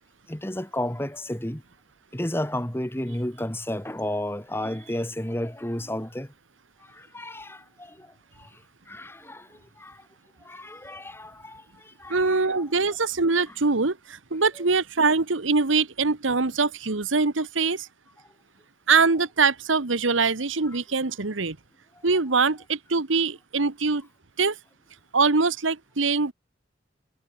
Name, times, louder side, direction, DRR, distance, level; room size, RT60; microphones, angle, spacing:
voice 1, 0.3-1.6 2.1-6.3 6.9-8.1 8.4-8.5 8.9-10.0 10.4-12.6, left 1 dB, 10° left, 2.0 m, -32 dB
voice 2, 12.1-17.9 18.9-21.6 22.0-24.1 24.4-24.6 25.1-26.3, right 4 dB, 90° right, 1.4 m, -23 dB
head